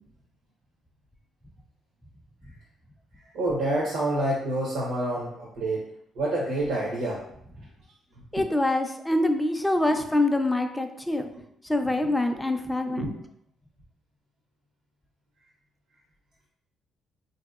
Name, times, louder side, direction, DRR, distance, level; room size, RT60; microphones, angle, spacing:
voice 1, 3.1-5.9 6.1-7.4 8.1-8.4 9.8-10.0 12.0-12.1 12.9-13.1, right 1 dB, 80° right, -4 dB, 0.7 m, -28 dB
voice 2, 8.3-11.3 11.6-13.1, left 1 dB, 10° left, 5 dB, 0.4 m, -25 dB
3.6 x 2.7 x 2.4 m, 0.72 s
cardioid pair, 90°, 0 cm